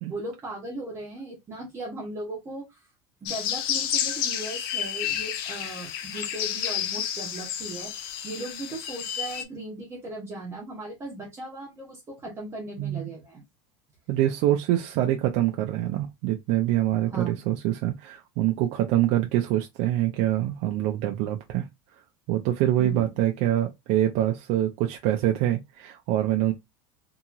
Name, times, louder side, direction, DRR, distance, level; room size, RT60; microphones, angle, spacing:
voice 1, 0.1-2.8 3.2-13.4 17.1-17.3 22.8-23.1, right 2 dB, 20° right, 1.0 m, -37 dB
sound 1, 3.3-9.4, left 9 dB, 80° left, 0.6 m, -30 dB
voice 2, 14.1-21.7 22.3-26.5, right 13 dB, 60° right, 0.5 m, -25 dB
2.8 x 2.8 x 2.4 m
supercardioid pair, 150°, 12 cm